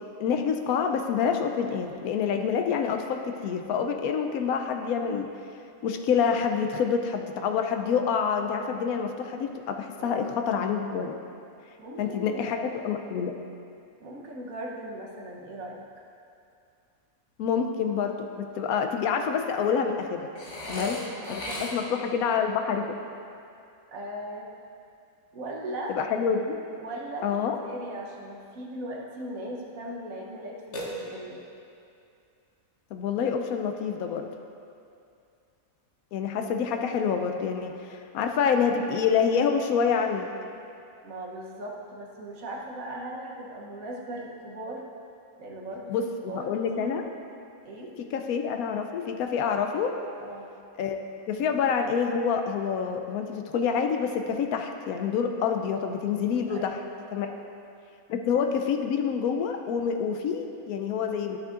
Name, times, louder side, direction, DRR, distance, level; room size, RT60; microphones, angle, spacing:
voice 1, 0.2-5.3 5.8-11.2 12.0-12.6 12.8-13.3 17.4-20.3 20.7-21.0 21.3-22.8 25.9-26.6 27.2-27.6 32.9-34.3 36.1-40.3 45.9-47.0 48.1-49.9 50.8-56.8 57.1-57.3 58.1-61.4, left 6 dB, 80° left, 5 dB, 1.0 m, -27 dB
voice 2, 10.0-10.4 11.8-12.9 14.0-15.8 20.7-22.1 23.9-24.5 25.3-26.0 26.8-31.4 41.0-44.8 45.4-46.9 47.6-47.9 50.2-50.5 56.5-56.8 57.3-57.5, right 1 dB, 70° right, -2 dB, 1.3 m, -38 dB
Burping eructation, 20.4-22.1 30.7-31.5, left 1 dB, 55° left, 1.3 m, -36 dB
11.5 x 6.1 x 2.4 m, 2.5 s
omnidirectional pair, 1.5 m